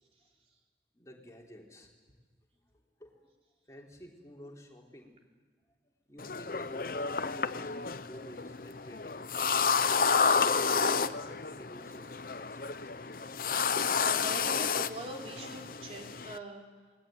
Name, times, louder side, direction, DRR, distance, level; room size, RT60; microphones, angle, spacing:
voice 1, 0.9-1.9 2.5-3.3 3.7-5.2 5.7-9.4 10.6-13.1, equal, 20° left, 0 dB, 3.7 m, -52 dB
sound 1, 6.2-16.4, left 5 dB, 50° left, 0.8 m, -30 dB
voice 2, 13.9-16.9, right 1 dB, 35° right, 0 dB, 4.4 m, -43 dB
27.0 x 20.5 x 9.3 m, 1.4 s
head